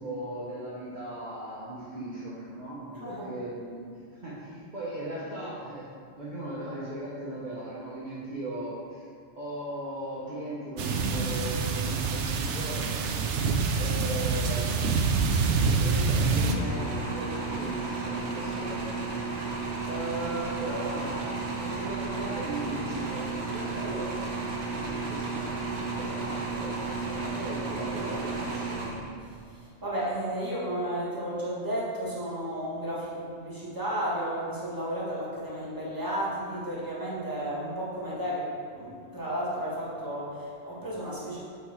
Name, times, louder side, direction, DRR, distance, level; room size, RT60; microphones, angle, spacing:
voice 1, 0.0-5.9 6.2-9.1 9.3-13.0 13.7-14.8 15.4-18.8 19.8-24.1 24.7-28.9, right 1 dB, 40° right, -9 dB, 1.1 m, -37 dB
voice 2, 3.0-3.3 29.5-38.5 38.7-41.4, right 1 dB, 20° right, -7 dB, 1.6 m, -33 dB
sound 1, 10.8-16.5, right 4 dB, 85° right, 0.9 m, -26 dB
sound 2, 16.4-29.4, right 3 dB, 70° right, 1.2 m, -33 dB
8.2 x 3.5 x 4.5 m, 2.3 s
omnidirectional pair, 1.2 m